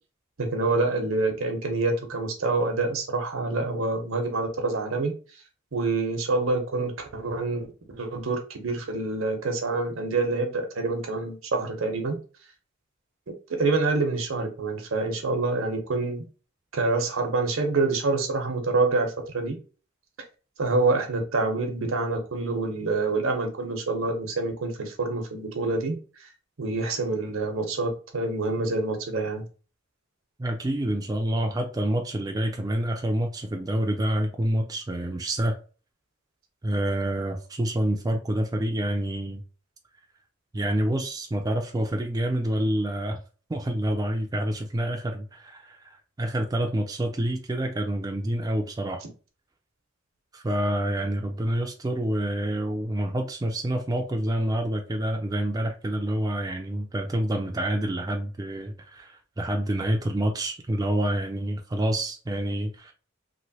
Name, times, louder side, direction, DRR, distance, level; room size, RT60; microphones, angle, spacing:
voice 1, 0.4-5.1 5.7-7.7 7.9-12.2 13.6-16.2 16.7-19.6 20.6-26.3 26.6-29.4, right 3 dB, 85° right, 0.8 m, -26 dB
voice 2, 30.4-35.5 36.6-39.4 40.5-43.2 43.5-49.0 50.3-62.9, right 1 dB, 20° right, 0.3 m, -27 dB
3.0 x 2.5 x 2.7 m
head